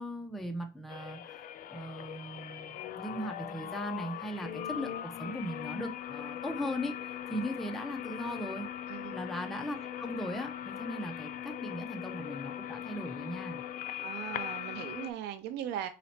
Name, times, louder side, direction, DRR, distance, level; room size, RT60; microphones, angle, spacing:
voice 1, 0.0-8.7 9.1-13.6, equal, ahead, 0.6 m, -39 dB
sound 1, 0.9-15.1, left 11 dB, 55° left, 0.4 m, -40 dB
voice 2, 14.0-15.9, right 11 dB, 85° right, 0.4 m, -38 dB
4.1 x 2.9 x 4.2 m
cardioid pair, 110°, 17 cm